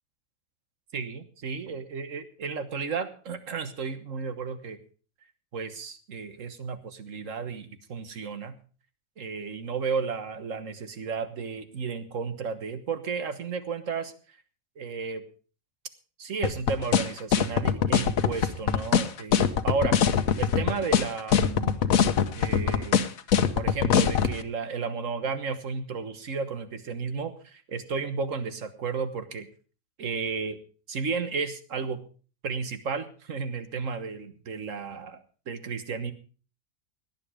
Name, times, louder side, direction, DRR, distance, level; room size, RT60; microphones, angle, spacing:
voice 1, 0.9-4.8 5.5-8.6 9.2-14.1 14.8-15.2 16.2-20.0 20.3-21.8 22.4-23.1 23.5-29.5 30.0-30.6 30.9-32.1 32.4-36.1, right 5 dB, 60° right, 10 dB, 1.7 m, -33 dB
sound 1, 16.4-24.3, left 8 dB, 70° left, 1.3 m, -22 dB
17.5 x 10.5 x 4.9 m, 0.39 s
omnidirectional pair, 1.5 m